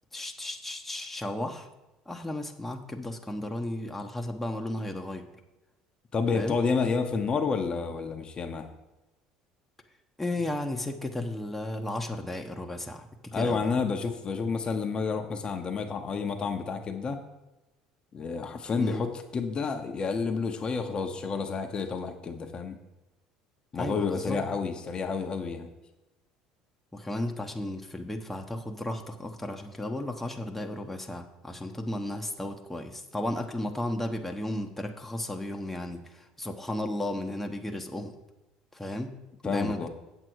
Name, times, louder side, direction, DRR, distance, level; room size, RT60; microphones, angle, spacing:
voice 1, 0.1-1.7 2.1-5.3 6.3-6.6 10.2-13.1 13.3-13.6 18.8-19.0 23.8-24.4 26.9-38.1 38.7-39.1 39.4-39.9, left 1 dB, 10° left, 3 dB, 1.1 m, -34 dB
voice 2, 6.1-8.7 13.3-17.2 18.1-22.8 23.7-25.7 39.4-39.9, left 5 dB, 35° left, 5 dB, 1.0 m, -30 dB
8.0 x 7.7 x 4.7 m, 1.0 s
hypercardioid pair, 75°, 2 cm